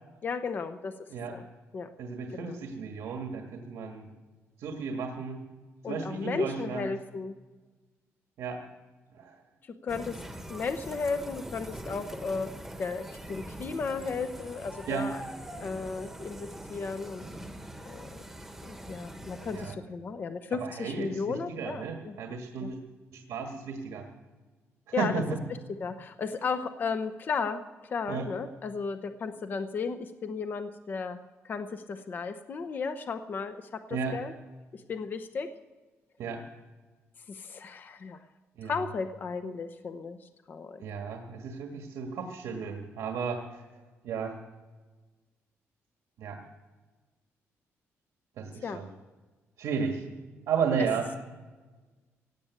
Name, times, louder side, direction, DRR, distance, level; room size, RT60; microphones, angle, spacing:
voice 1, 0.2-0.9 1.3-1.4 1.7-1.9 2.3-2.6 5.8-7.4 9.7-10.2 10.5-12.5 12.8-15.2 15.6-17.3 17.8-18.2 18.6-22.2 22.6-22.7 24.9-25.2 25.8-27.6 27.9-31.2 31.4-34.3 34.7-35.5 37.3-38.2 38.6-40.8 48.6-48.8, left 5 dB, 40° left, 9 dB, 0.8 m, -34 dB
voice 2, 2.0-4.0 4.6-5.4 5.8-6.9 8.4-8.6 9.1-9.4 14.9-15.1 19.5-19.7 20.6-22.8 23.1-24.0 25.0-25.4 28.1-28.3 33.9-34.2 36.2-36.4 38.6-38.8 40.8-43.6 44.0-44.3 46.2-46.4 48.4-48.9 49.6-50.0 50.5-51.1, right 6 dB, 85° right, 2 dB, 1.8 m, -33 dB
sound 1, 9.9-19.7, right 1 dB, 5° right, 1.2 m, -43 dB
17.0 x 8.7 x 8.3 m, 1.3 s
cardioid pair, 160°, 5 cm